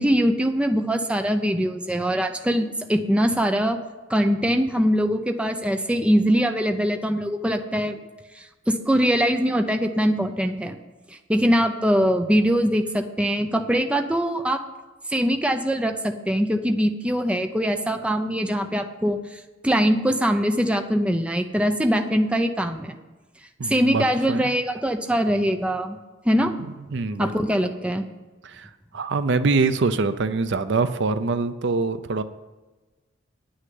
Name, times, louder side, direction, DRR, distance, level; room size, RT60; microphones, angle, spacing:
voice 1, 0.0-3.8 4.1-8.0 8.4-10.7 11.3-14.6 15.1-22.9 23.7-26.0 26.2-26.5 27.2-28.0, equal, 5° right, 6 dB, 0.5 m, -22 dB
voice 2, 23.6-24.4 26.6-27.3 28.4-32.2, right 3 dB, 60° right, 11 dB, 0.6 m, -24 dB
9.6 x 6.3 x 7.7 m, 1.2 s
head